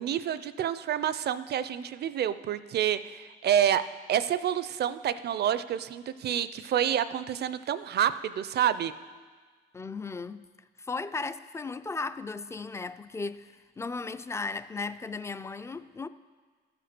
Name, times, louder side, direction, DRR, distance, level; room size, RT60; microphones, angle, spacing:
voice 1, 0.0-3.8 4.1-8.9, right 10 dB, 55° right, 0.4 m, -28 dB
voice 2, 9.7-10.4 10.8-16.1, left 4 dB, 15° left, 0.3 m, -36 dB
14.0 x 5.1 x 6.0 m
cardioid pair, 90°, 20 cm